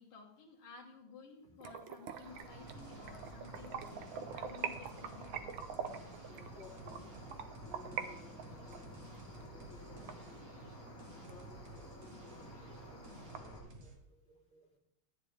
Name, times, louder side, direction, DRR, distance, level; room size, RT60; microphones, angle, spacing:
voice 1, 0.0-3.8 4.1-5.6, left 4 dB, 70° left, -3 dB, 2.2 m, -55 dB
sound 1, 1.6-8.1 8.4-10.9 11.3-11.4 11.8-11.9 12.3-12.4 12.6-13.4, right 7 dB, 70° right, 1.5 m, -44 dB
Cricket, 2.2-13.6, equal, ahead, 4.5 m, -53 dB
sound 2, 2.5-14.0, right 3 dB, 45° right, 1.8 m, -55 dB
voice 2, 6.3-7.1 7.7-9.0 9.3-10.4 11.1-13.9 14.3-14.6, left 3 dB, 30° left, -6 dB, 3.4 m, -58 dB
14.0 x 9.1 x 3.4 m, 0.81 s
omnidirectional pair, 2.4 m